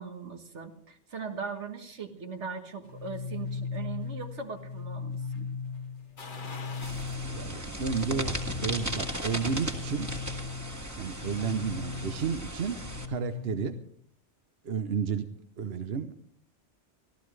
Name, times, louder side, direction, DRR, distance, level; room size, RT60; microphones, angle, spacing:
voice 1, 0.0-5.5, right 5 dB, 80° right, 6 dB, 1.8 m, -39 dB
sound 1, 2.8-13.8, left 5 dB, 80° left, 2.8 m, -38 dB
sound 2, 6.2-7.2 7.7-7.8 9.3-10.1 10.4-10.5, left 4 dB, 45° left, 1.4 m, -45 dB
sound 3, 6.8-13.0, right 1 dB, 15° right, 1.7 m, -37 dB
voice 2, 7.3-8.4 8.6-10.1 11.0-12.8 13.1-13.8 14.6-15.3 15.6-16.1, right 6 dB, 60° right, 9 dB, 1.0 m, -31 dB
24.5 x 15.0 x 3.3 m, 0.63 s
omnidirectional pair, 1.2 m